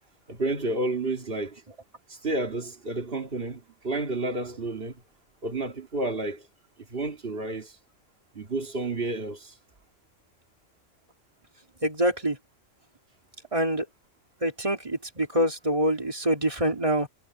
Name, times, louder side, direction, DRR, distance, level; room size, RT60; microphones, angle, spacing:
voice 1, 0.3-1.6 2.2-5.0 5.4-6.4 6.9-7.7 8.3-9.5, right 2 dB, 45° right, 2.8 m, -30 dB
voice 2, 11.8-12.4 13.5-13.8 14.4-17.1, equal, 25° right, 2.8 m, -25 dB
omnidirectional pair, 1.3 m